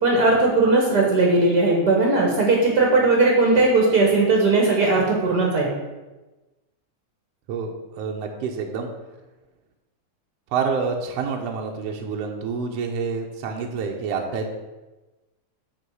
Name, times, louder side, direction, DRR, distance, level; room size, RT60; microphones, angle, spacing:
voice 1, 0.0-5.7, right 3 dB, 55° right, -1 dB, 1.1 m, -18 dB
voice 2, 7.5-8.9 10.5-14.6, right 5 dB, 70° right, 1 dB, 1.5 m, -28 dB
8.0 x 4.0 x 6.9 m, 1.1 s
omnidirectional pair, 3.7 m